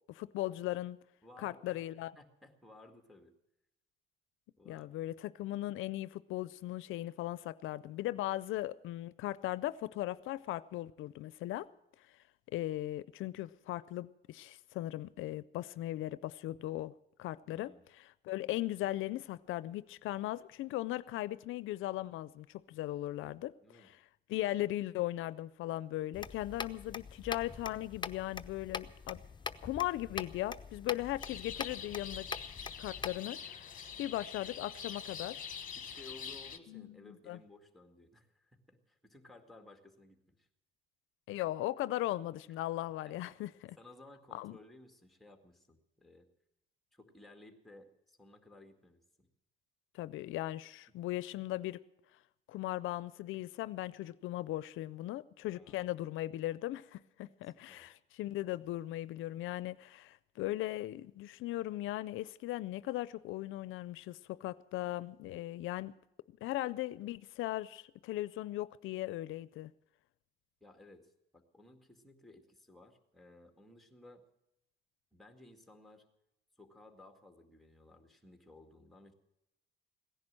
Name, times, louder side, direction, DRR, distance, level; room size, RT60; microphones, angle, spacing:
voice 1, 0.1-1.0 1.4-2.1 4.7-11.7 12.5-16.9 17.2-17.7 18.0-24.0 24.3-29.2 29.6-32.3 32.8-33.7 34.0-35.4 36.7-37.4 41.3-43.8 44.3-44.6 49.9-51.8 52.5-65.9 66.4-69.7, left 15 dB, 85° left, 0.5 m, -38 dB
voice 2, 1.2-1.8 2.2-3.3 4.6-5.2 17.4-17.8 23.6-23.9 35.8-40.5 43.0-43.2 43.8-46.3 46.9-49.3 55.5-55.9 57.4-57.9 70.6-74.2 75.1-76.0 76.6-79.1, left 2 dB, ahead, 2.2 m, -58 dB
sound 1, 26.1-33.2, left 5 dB, 25° left, 0.8 m, -43 dB
sound 2, 31.2-36.6, left 7 dB, 45° left, 1.3 m, -45 dB
17.0 x 10.5 x 7.6 m
cardioid pair, 90°, 20 cm